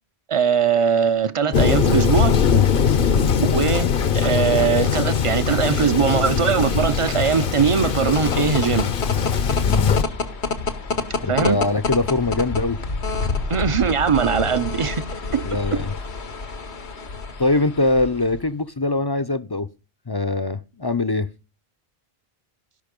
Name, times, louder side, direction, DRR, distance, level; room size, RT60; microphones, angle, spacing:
voice 1, 0.3-2.3 3.5-8.9 11.3-11.6 13.5-15.4, right 6 dB, 35° right, 0.7 m, -21 dB
Thunder, 1.5-10.0, left 7 dB, 55° left, 1.0 m, -20 dB
sound 1, 7.8-18.5, left 4 dB, 85° left, 1.6 m, -28 dB
voice 2, 9.6-10.0 11.2-12.8 15.5-15.9 17.4-19.7 20.1-21.3, left 2 dB, 25° left, 0.6 m, -22 dB
17.0 x 5.8 x 5.3 m
omnidirectional pair, 1.1 m